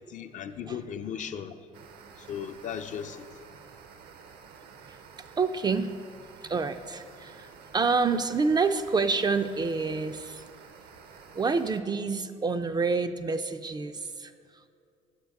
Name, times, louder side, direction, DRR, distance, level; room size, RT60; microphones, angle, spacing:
voice 1, 0.1-1.5 2.2-3.3, left 8 dB, 45° left, 0.5 m, -36 dB
sound 1, 1.7-11.8, right 6 dB, 60° right, 0.6 m, -51 dB
voice 2, 4.9-5.9 6.2-10.4 11.3-14.7, right 4 dB, 25° right, 0.4 m, -28 dB
8.1 x 7.3 x 3.5 m
hypercardioid pair, 55°, 18 cm